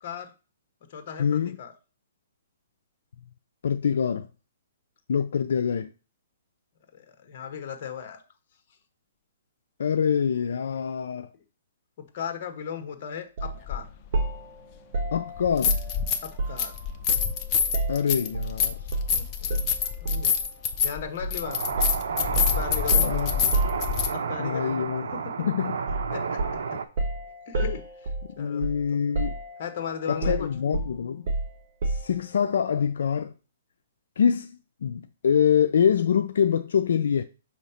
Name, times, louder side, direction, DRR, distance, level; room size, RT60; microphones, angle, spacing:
voice 1, 0.0-0.3 0.9-1.7 6.9-8.2 12.1-13.9 16.2-16.7 19.1-19.7 20.0-20.3 20.8-21.6 22.4-23.2 24.1-24.9 26.1-26.4 27.5-28.1 28.4-29.0 29.6-30.5, left 7 dB, 40° left, 1.2 m, -36 dB
voice 2, 1.2-1.5 3.6-4.3 5.1-5.9 9.8-11.3 15.1-15.8 17.9-18.8 22.9-23.5 24.4-25.1 25.4-25.8 28.4-29.3 30.1-31.2 31.8-33.3 34.2-34.5 34.8-37.2, left 7 dB, 75° left, 0.4 m, -25 dB
sound 1, 13.4-13.6 14.1-16.7 17.1-18.6 18.9-19.1 19.5-20.4 21.2-21.4 21.8-24.3 25.9-26.1 26.4-28.9 29.1-29.8 30.2-32.2, right 2 dB, 55° right, 1.3 m, -30 dB
sound 2, 13.7-13.8 15.4-16.3 16.6-24.1, left 7 dB, 25° left, 0.7 m, -26 dB
sound 3, 21.4-26.8, right 5 dB, 70° right, 0.7 m, -32 dB
5.6 x 3.1 x 5.6 m
hypercardioid pair, 160°, 0 cm